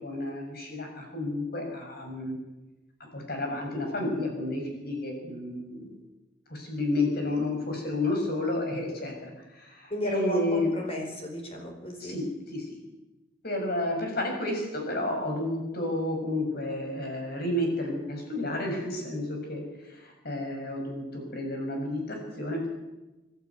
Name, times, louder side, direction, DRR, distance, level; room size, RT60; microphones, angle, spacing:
voice 1, 0.0-2.4 3.1-5.9 6.5-10.7 12.0-12.8 13.4-22.7, left 1 dB, 55° left, 2 dB, 6.4 m, -31 dB
voice 2, 9.9-12.2, equal, 30° left, 3 dB, 4.5 m, -34 dB
24.0 x 12.5 x 9.6 m, 1.1 s
head